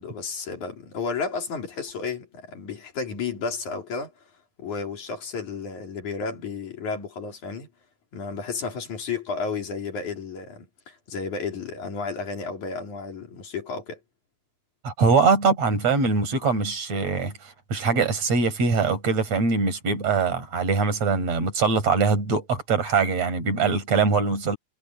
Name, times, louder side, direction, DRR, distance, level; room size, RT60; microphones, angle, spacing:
voice 1, 0.0-4.1 4.6-7.7 8.1-14.0, left 4 dB, 75° left, 5.2 m, -32 dB
voice 2, 14.8-24.6, right 4 dB, 60° right, 6.3 m, -22 dB
omnidirectional pair, 3.5 m